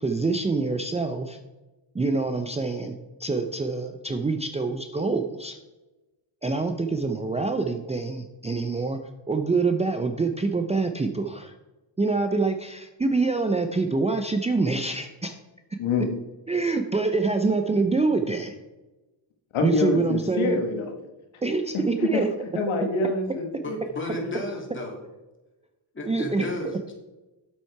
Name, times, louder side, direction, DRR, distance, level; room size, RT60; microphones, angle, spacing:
voice 1, 0.0-1.4 1.9-5.6 6.4-9.0 9.3-11.6 12.0-15.4 16.5-18.6 19.6-20.6 21.4-22.3 26.1-26.5, right 3 dB, 15° right, 6 dB, 0.5 m, -25 dB
voice 2, 15.8-16.1 19.5-20.9 22.0-22.2 22.5-23.8 24.2-24.3, left 4 dB, 75° left, 4 dB, 1.5 m, -26 dB
voice 3, 23.6-25.0 25.9-26.9, left 2 dB, 25° left, 0 dB, 2.7 m, -33 dB
7.7 x 7.4 x 4.7 m, 1.1 s
cardioid pair, 100°, 49 cm